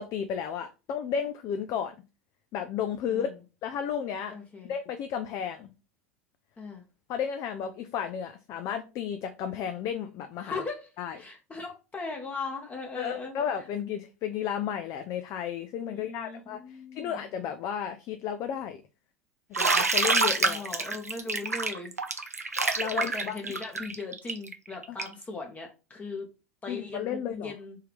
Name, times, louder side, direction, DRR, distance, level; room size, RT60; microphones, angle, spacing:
voice 1, 0.0-2.0 2.5-3.3 3.6-4.3 4.7-5.7 7.1-10.6 11.0-11.2 13.0-18.8 19.5-20.7 22.8-23.4 24.9-25.0 26.7-27.5, left 8 dB, 40° left, 0.4 m, -33 dB
voice 2, 4.3-4.7 6.6-6.8 10.4-13.4 15.8-17.2 20.4-21.9 22.9-26.3 26.6-27.8, left 3 dB, 20° left, 0.9 m, -39 dB
Bathtub (filling or washing), 19.5-25.2, right 3 dB, 90° right, 0.4 m, -27 dB
3.7 x 2.8 x 3.4 m
figure-of-eight pair, 80°, 8 cm